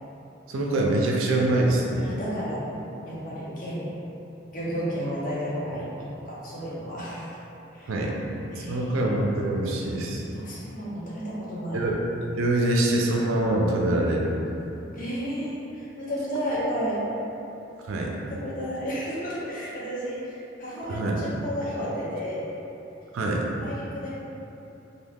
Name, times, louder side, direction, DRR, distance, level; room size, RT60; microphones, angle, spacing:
voice 1, 0.5-2.1 7.9-8.1 8.6-10.2 11.7-12.0 12.4-14.3 17.9-18.2 20.9-21.2 23.1-23.4, right 1 dB, 90° right, -1 dB, 0.4 m, -24 dB
voice 2, 2.0-2.7 3.1-3.9 4.5-7.3 7.7-8.0 8.5-9.2 10.3-11.8 14.9-17.0 18.3-22.4 23.6-24.1, equal, 40° left, -7 dB, 0.6 m, -32 dB
2.3 x 2.3 x 3.3 m, 3.0 s
head